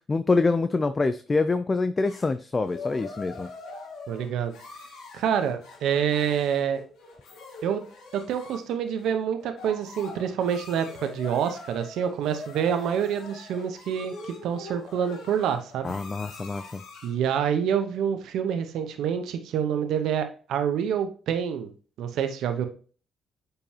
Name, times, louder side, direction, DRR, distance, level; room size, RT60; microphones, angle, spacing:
voice 1, 0.1-3.5 15.8-16.8, left 3 dB, 25° left, 11 dB, 0.4 m, -25 dB
sound 1, 2.0-17.2, left 3 dB, 85° left, 2.1 m, -43 dB
voice 2, 4.1-4.5 5.1-6.8 7.6-7.8 8.1-15.9 17.0-21.7 22.0-22.6, right 8 dB, 80° right, 8 dB, 0.9 m, -27 dB
9.0 x 5.3 x 2.8 m, 0.40 s
cardioid pair, 90°, 0 cm